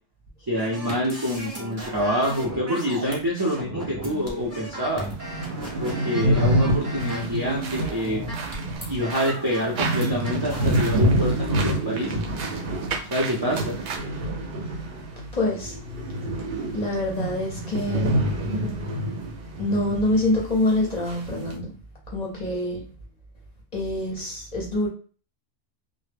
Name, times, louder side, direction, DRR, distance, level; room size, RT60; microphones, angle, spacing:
voice 1, 0.5-5.1 5.8-8.2 8.9-12.2 13.1-13.8, equal, 35° right, 0.3 m, -26 dB
sound 1, 0.6-10.9, right 1 dB, 15° right, 0.7 m, -36 dB
sound 2, 4.4-4.5 4.8-4.9 5.1-15.3 15.6-20.1 20.3-20.4 21.1-21.5, right 1 dB, 60° right, 0.7 m, -27 dB
sound 3, 7.0-14.0, right 5 dB, 85° right, 1.0 m, -36 dB
voice 2, 15.3-15.8 16.7-18.4 19.6-21.8 22.1-22.9 23.7-24.9, left 1 dB, 45° left, 0.6 m, -26 dB
2.1 x 2.0 x 3.2 m
omnidirectional pair, 1.2 m